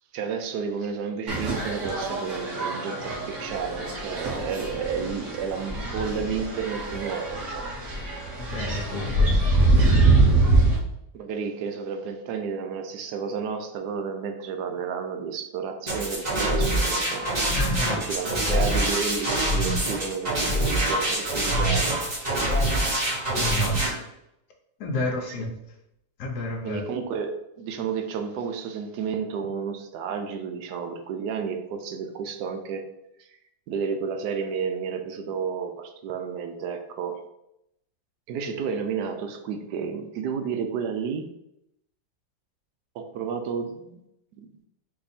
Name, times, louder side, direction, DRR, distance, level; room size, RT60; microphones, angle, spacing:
voice 1, 0.1-7.7 11.1-17.3 18.0-21.9 25.3-25.4 26.6-27.3 27.6-32.9 33.2-33.3 33.7-37.2 38.3-41.3 42.9-44.0 44.4-44.5, right 6 dB, 80° right, 6 dB, 1.2 m, -31 dB
sound 1, 1.3-10.8, right 2 dB, 50° right, 1.3 m, -24 dB
voice 2, 8.4-9.9 17.5-18.6 23.3-23.7 24.8-25.5 26.2-26.8, left 2 dB, 75° left, 3 dB, 1.3 m, -31 dB
sound 2, 15.9-23.9, right 1 dB, 25° right, 1.3 m, -25 dB
4.3 x 2.8 x 4.1 m, 0.82 s
omnidirectional pair, 1.8 m